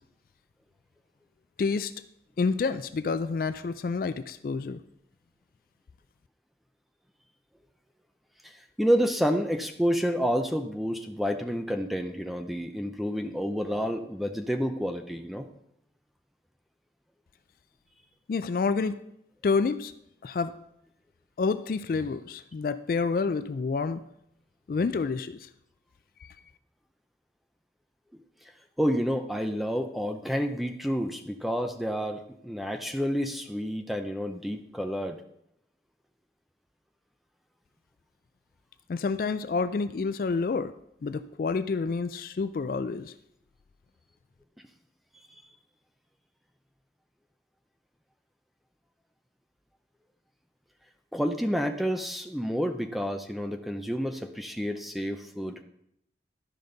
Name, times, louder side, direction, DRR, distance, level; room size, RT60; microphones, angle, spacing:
voice 1, 1.6-1.9 2.4-4.8 18.3-19.0 19.4-19.9 20.2-20.6 21.4-24.0 24.7-25.5 26.2-26.3 38.9-40.7 41.0-43.1, left 4 dB, 50° left, 12 dB, 0.3 m, -28 dB
voice 2, 8.4-15.5 28.8-35.2 51.1-55.6, equal, ahead, 6 dB, 0.5 m, -29 dB
12.5 x 5.2 x 3.9 m, 0.76 s
head